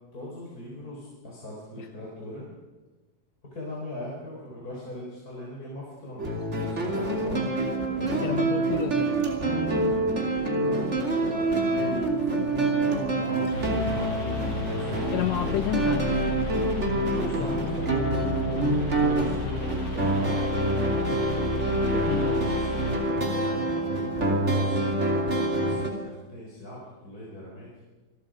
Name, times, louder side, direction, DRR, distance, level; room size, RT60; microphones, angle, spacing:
voice 1, 0.1-2.4 3.5-7.4 7.8-8.3 10.5-14.2 14.8-15.1 17.1-17.9 18.9-23.3 23.7-25.0 25.3-27.7, left 1 dB, 30° left, -4 dB, 4.9 m, -40 dB
sound 1, 6.2-25.9, right 2 dB, 25° right, 2.9 m, -26 dB
voice 2, 8.2-9.1 15.1-16.1 17.2-17.7 22.1-22.3, left 10 dB, 70° left, 8 dB, 2.0 m, -30 dB
sound 2, 13.5-22.9, left 2 dB, 55° left, 8.0 m, -32 dB
27.5 x 21.0 x 5.2 m, 1.2 s
omnidirectional pair, 3.3 m